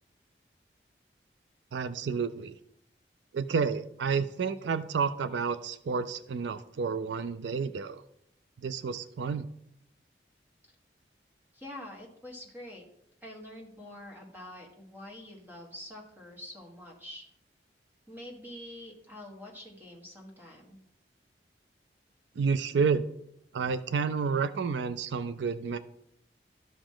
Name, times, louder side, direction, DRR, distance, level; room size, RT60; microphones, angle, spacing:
voice 1, 1.7-2.6 3.3-8.0 8.6-9.5 22.4-23.1 23.5-25.8, right 5 dB, 85° right, 13 dB, 0.4 m, -30 dB
voice 2, 11.5-12.8 13.2-17.2 18.1-20.8, left 1 dB, 10° right, 0 dB, 1.6 m, -46 dB
13.0 x 5.0 x 3.8 m, 0.75 s
head